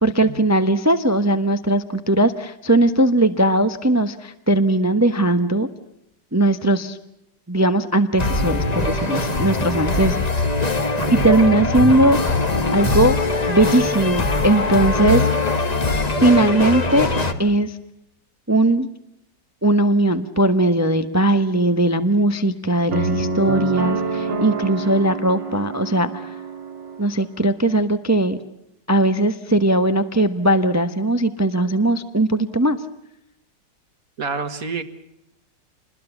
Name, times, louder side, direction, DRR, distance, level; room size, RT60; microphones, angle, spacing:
voice 1, 0.0-5.7 6.3-7.0 7.5-10.2 11.1-12.4 12.7-13.2 13.5-15.3 16.2-17.1 17.4-17.7 18.5-18.9 19.6-26.3 27.0-28.4 28.9-32.8, right 1 dB, 10° right, 10 dB, 0.8 m, -19 dB
sound 1, 8.2-17.3, left 2 dB, 25° left, 1.4 m, -21 dB
voice 2, 11.0-11.4 34.2-34.8, right 5 dB, 50° right, 10 dB, 1.9 m, -28 dB
sound 2, 22.9-27.0, right 4 dB, 90° right, 2.7 m, -26 dB
27.5 x 21.0 x 7.1 m, 0.79 s
omnidirectional pair, 1.9 m